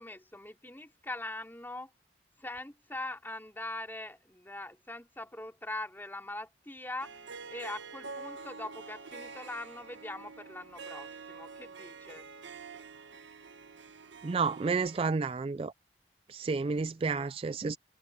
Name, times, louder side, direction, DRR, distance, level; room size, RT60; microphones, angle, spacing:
voice 1, 0.0-1.9 2.4-7.2 7.5-12.2, left 2 dB, 10° left, 3.2 m, -42 dB
Harp, 7.0-15.0, right 4 dB, 80° right, 1.5 m, -47 dB
voice 2, 14.2-15.7 16.3-17.8, right 4 dB, 30° right, 0.3 m, -31 dB
head